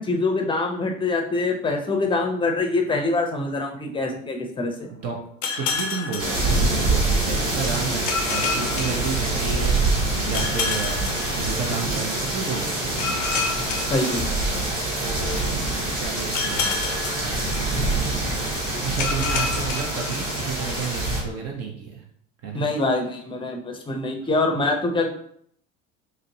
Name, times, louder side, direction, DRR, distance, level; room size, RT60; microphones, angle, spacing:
voice 1, 0.0-4.9 13.9-14.3 22.5-25.1, left 2 dB, 15° left, 3 dB, 0.6 m, -24 dB
sound 1, 5.4-7.2 8.1-9.8 10.3-12.1 13.0-15.0 16.3-18.1 19.0-20.8, left 5 dB, 80° left, 0.6 m, -30 dB
voice 2, 5.5-13.3 15.0-15.6 16.0-16.9 18.8-22.0 22.4-22.7, right 5 dB, 40° right, 1 dB, 0.7 m, -32 dB
sound 2, 6.2-21.2, right 2 dB, 80° right, 1.1 m, -25 dB
5.0 x 2.1 x 2.7 m, 0.65 s
figure-of-eight pair, 70°, 37 cm